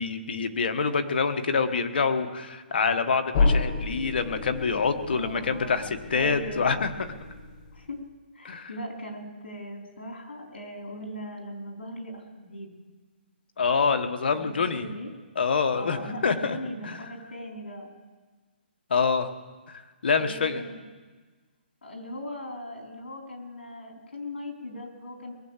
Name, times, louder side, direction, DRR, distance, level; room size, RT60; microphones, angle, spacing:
voice 1, 0.0-6.9 8.4-8.7 13.6-14.9 15.3-16.6 16.8-17.0 18.9-19.3 19.7-20.6, left 5 dB, 65° left, 8 dB, 1.4 m, -26 dB
sound 1, 3.3-8.0, left 3 dB, 35° left, 1.0 m, -30 dB
voice 2, 5.1-5.9 6.1-6.8 7.7-8.0 8.3-12.7 14.5-15.1 15.7-17.9 20.2-20.8 21.8-25.3, left 1 dB, 90° left, 1 dB, 4.3 m, -39 dB
22.0 x 7.7 x 7.4 m, 1.4 s
hypercardioid pair, 160°, 6 cm